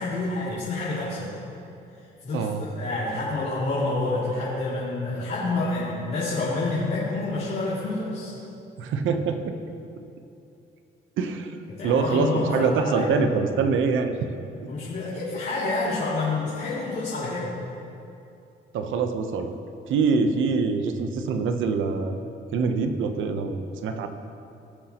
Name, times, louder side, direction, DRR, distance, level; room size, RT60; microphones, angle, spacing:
voice 1, 0.0-1.3 2.2-8.3 11.7-13.1 14.7-17.5, left 2 dB, 60° left, -10 dB, 2.7 m, -28 dB
voice 2, 2.3-2.7 8.8-9.5 11.2-11.6 11.8-14.3 18.7-19.6 19.9-22.2 22.5-24.1, right 5 dB, 80° right, 7 dB, 0.9 m, -24 dB
19.0 x 7.8 x 3.0 m, 2.7 s
cardioid pair, 90°, 20 cm